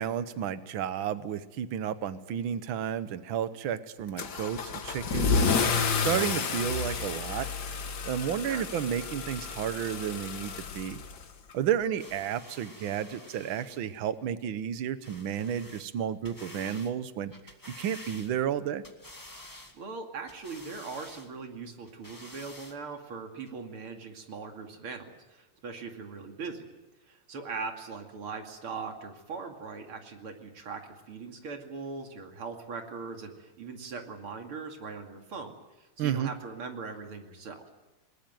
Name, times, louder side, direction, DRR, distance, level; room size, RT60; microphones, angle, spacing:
voice 1, 0.0-5.5 6.0-7.5 8.1-11.0 11.5-17.3 17.8-18.8 36.0-36.3, right 9 dB, 70° right, 13 dB, 1.8 m, -32 dB
Car / Engine starting / Accelerating revving vroom, 4.2-11.5, left 5 dB, 55° left, 1.9 m, -30 dB
sound 1, 12.0-14.0 15.0-15.9 16.2-16.9 17.3-18.5 18.8-19.8 20.3-21.3 21.9-22.8 23.5-23.6, left 1 dB, 10° left, 1.8 m, -49 dB
voice 2, 19.7-26.7 27.1-37.6, right 4 dB, 90° right, 4 dB, 3.3 m, -40 dB
21.0 x 20.5 x 9.2 m, 1.1 s
omnidirectional pair, 2.3 m